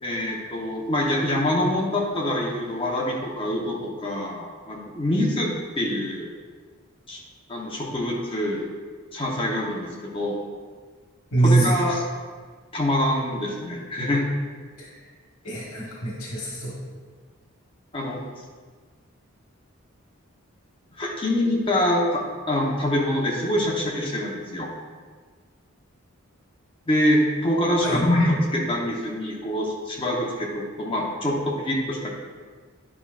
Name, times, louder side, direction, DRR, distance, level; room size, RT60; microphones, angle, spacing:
voice 1, 0.0-6.3 7.1-7.2 7.5-8.7 9.1-10.4 11.4-12.0 12.7-14.2 17.9-18.2 21.0-24.7 26.9-32.1, left 1 dB, 25° left, -2 dB, 0.9 m, -25 dB
voice 2, 11.3-11.7 14.8-15.1 15.4-16.8 27.8-28.0, right 2 dB, 85° left, -4 dB, 1.3 m, -23 dB
9.8 x 5.6 x 2.4 m, 1.6 s
head